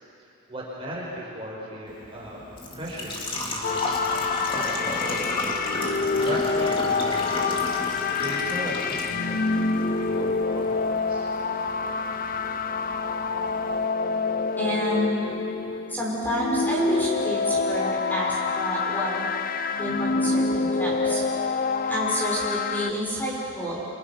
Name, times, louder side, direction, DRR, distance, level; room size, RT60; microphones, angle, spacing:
voice 1, 0.5-2.4 2.7-3.8 4.1-4.2 4.5-5.2 6.2-7.5 8.2-11.3, equal, 25° right, -4 dB, 5.7 m, -37 dB
Engine / Trickle dribble / Fill (with liquid), 1.9-13.9, left 1 dB, 25° left, 2.7 m, -33 dB
sound 1, 3.6-22.9, left 4 dB, 40° left, 0.7 m, -27 dB
voice 2, 14.6-15.1 15.9-19.4 19.7-21.2 21.8-23.9, equal, 10° left, -5 dB, 5.9 m, -29 dB
30.0 x 27.0 x 6.1 m, 2.8 s
head